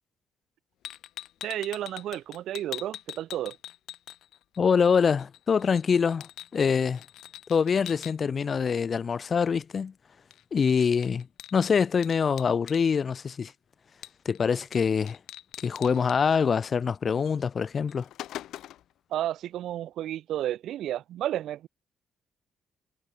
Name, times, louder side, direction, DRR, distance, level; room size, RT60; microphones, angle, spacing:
sound 1, 0.8-4.6 4.9-8.1 10.3-10.4 10.7-12.8 14.0-14.4 14.7-14.8 15.1-16.2 17.3-17.4 17.7-18.9, left 13 dB, 80° left, 1.6 m, -43 dB
voice 1, 1.4-3.6 19.1-21.7, right 12 dB, 80° right, 1.2 m, -32 dB
voice 2, 4.6-7.0 7.5-9.9 10.5-11.3 11.5-13.5 14.3-15.2 15.6-18.1, left 6 dB, 45° left, 1.9 m, -25 dB
cardioid pair, 90°, 0 cm